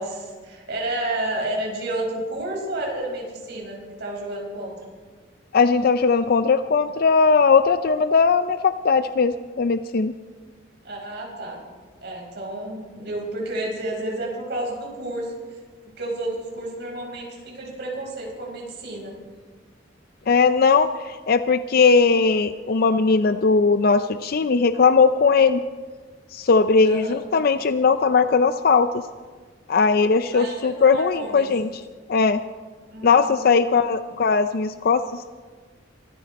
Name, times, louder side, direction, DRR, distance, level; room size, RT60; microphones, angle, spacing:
voice 1, 0.0-4.9 10.8-11.6 12.0-15.6 16.0-19.1 26.8-27.2 30.3-31.5 32.9-33.9, right 1 dB, 60° right, -1 dB, 4.8 m, -31 dB
voice 2, 5.5-10.1 20.3-25.6 26.3-29.0 29.7-31.8 32.1-32.4 33.0-35.3, left 5 dB, 55° left, 11 dB, 0.5 m, -19 dB
24.0 x 14.0 x 4.2 m, 1.5 s
head